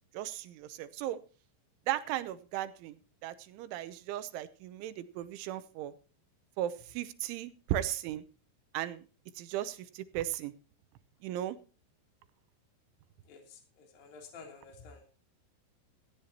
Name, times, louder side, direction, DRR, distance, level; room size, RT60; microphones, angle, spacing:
voice 1, 0.1-1.2 1.9-3.0 3.2-5.9 6.6-8.2 8.7-9.0 9.4-10.5 11.2-11.6, right 13 dB, 80° right, 13 dB, 3.1 m, -36 dB
voice 2, 13.3-15.1, left 5 dB, 50° left, 3 dB, 4.7 m, -51 dB
17.0 x 14.5 x 2.9 m, 0.37 s
omnidirectional pair, 5.6 m